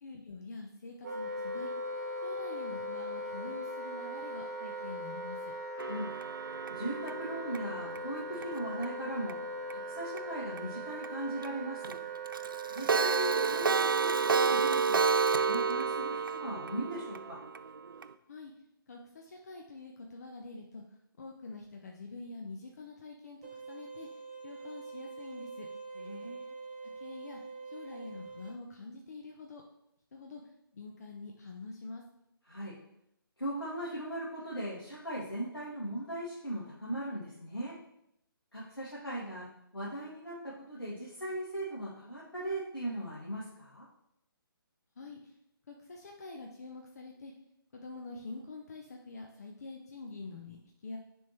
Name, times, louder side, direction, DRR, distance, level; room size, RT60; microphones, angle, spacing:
voice 1, 0.0-1.7 2.2-5.5 18.3-18.5 18.9-20.8 21.2-25.7 26.8-27.4 27.7-29.6 30.1-30.4 30.7-32.0 45.0-45.3 45.7-47.3 47.7-51.0, left 3 dB, 45° left, 1 dB, 0.6 m, -46 dB
Wind instrument woodwind instrument, 1.0-14.4, right 1 dB, 45° right, 1.1 m, -40 dB
Clock, 5.8-8.8 9.3-9.4 9.7-9.8 10.2-10.3 10.6-10.7 11.0-11.1 11.4-11.5 11.8-11.9 12.3-18.1, right 5 dB, 65° right, 0.4 m, -30 dB
voice 2, 6.7-9.4 9.8-12.0 12.7-15.0 15.4-17.4 25.9-26.5 32.5-32.7 33.4-37.7 38.5-39.5 39.7-43.9, right 1 dB, 80° left, -8 dB, 1.9 m, -38 dB
sound 1, 23.4-28.5, right 4 dB, 25° right, 0.8 m, -45 dB
9.9 x 3.6 x 3.0 m, 0.79 s
figure-of-eight pair, 145°, 12 cm